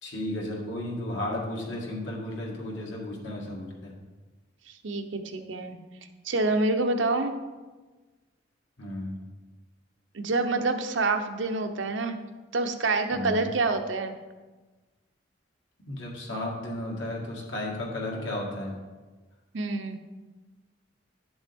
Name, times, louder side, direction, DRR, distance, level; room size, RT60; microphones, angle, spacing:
voice 1, 0.0-3.9 8.8-9.2 13.1-13.4 15.9-18.7, left 1 dB, 75° left, -3 dB, 2.0 m, -34 dB
voice 2, 4.7-5.8 6.2-7.3 10.1-12.2 12.5-14.1 19.5-20.0, right 3 dB, 75° right, 6 dB, 0.8 m, -27 dB
10.5 x 7.1 x 3.6 m, 1.3 s
head